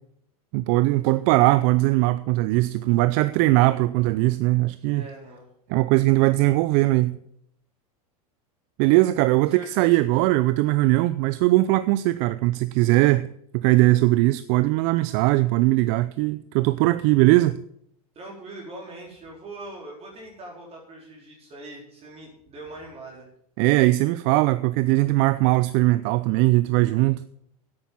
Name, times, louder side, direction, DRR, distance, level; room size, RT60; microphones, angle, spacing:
voice 1, 0.5-5.1 5.7-7.2 8.8-17.6 23.6-27.2, right 19 dB, 50° right, 0.5 m, -20 dB
voice 2, 4.8-5.5 9.4-10.0 18.1-23.3, right 2 dB, 30° right, 4.1 m, -42 dB
10.0 x 8.8 x 7.1 m
hypercardioid pair, 100°, 19 cm